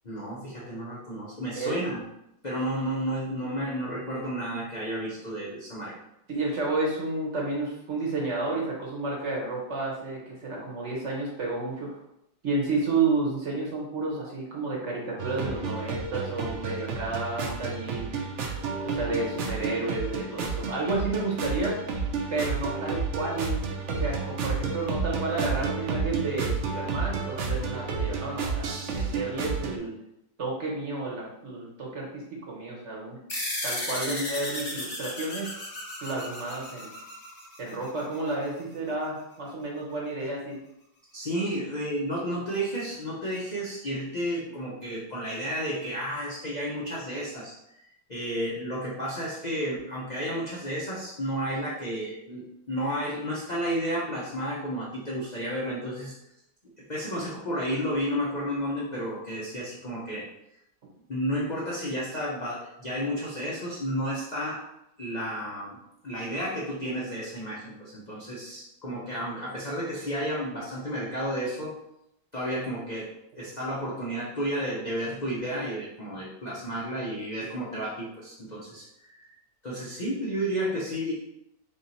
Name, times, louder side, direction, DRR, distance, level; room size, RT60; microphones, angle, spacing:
voice 1, 0.0-2.0 2.4-5.9 34.1-34.3 41.1-47.6 48.1-56.1 56.9-60.2 61.1-64.6 65.0-71.7 72.3-73.1 73.4-79.3 79.6-81.1, equal, 75° left, -6 dB, 0.4 m, -32 dB
voice 2, 6.3-12.0 12.4-18.1 18.8-21.8 22.3-29.9 30.4-33.2 33.6-35.5 36.0-36.9 37.6-40.6, right 3 dB, 50° right, -3 dB, 1.0 m, -31 dB
sound 1, 15.2-29.8, right 4 dB, 80° right, 0.6 m, -31 dB
sound 2, 33.3-38.2, left 1 dB, 25° left, 0.9 m, -35 dB
3.6 x 2.7 x 4.1 m, 0.82 s
omnidirectional pair, 1.9 m